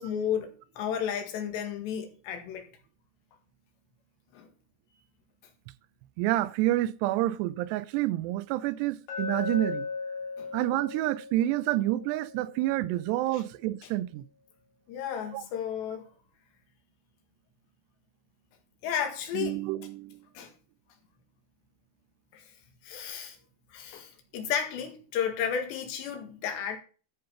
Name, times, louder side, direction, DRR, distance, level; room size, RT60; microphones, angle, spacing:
voice 1, 0.0-2.6 4.3-4.5 10.4-10.5 13.3-13.4 14.9-16.1 18.8-19.6 20.4-20.5 22.3-22.4 22.8-23.4 23.7-26.8, left 8 dB, 75° left, 4.0 m, -33 dB
voice 2, 6.2-9.9 10.5-14.2 15.3-15.4 19.3-20.2, right 15 dB, 80° right, 2.6 m, -28 dB
Glass, 9.1-13.2, left 5 dB, 50° left, 2.9 m, -38 dB
13.5 x 5.3 x 5.7 m
omnidirectional pair, 5.1 m